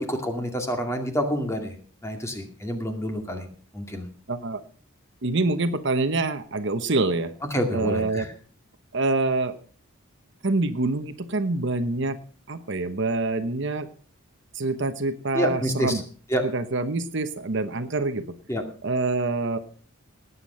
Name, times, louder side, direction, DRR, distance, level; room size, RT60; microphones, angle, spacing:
voice 1, 0.0-1.7 2.0-3.5 3.7-4.0 7.5-8.3 15.3-16.0 16.3-16.5 18.5-18.6, equal, 15° left, 4 dB, 2.3 m, -27 dB
voice 2, 4.3-4.6 5.2-7.3 7.7-8.3 8.9-9.6 10.4-12.2 12.5-13.9 14.5-16.0 16.4-18.3 18.8-19.6, right 2 dB, 55° right, 10 dB, 1.0 m, -26 dB
19.0 x 8.3 x 5.6 m, 0.42 s
head